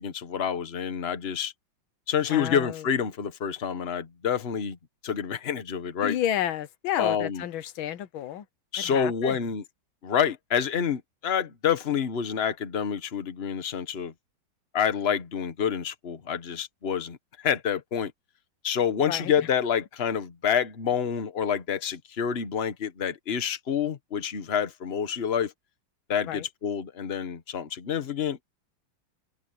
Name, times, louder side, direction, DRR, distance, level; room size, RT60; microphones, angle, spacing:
voice 1, 0.0-1.5 2.1-4.8 5.0-6.2 7.0-7.4 8.7-9.6 10.0-14.1 14.7-18.1 18.6-25.5 26.1-28.5, left 7 dB, 35° left, 1.4 m, -28 dB
voice 2, 2.3-2.9 6.0-8.5 8.8-9.4 19.0-19.5 26.3-26.4, left 11 dB, 90° left, 1.7 m, -31 dB
omnidirectional pair, 2.1 m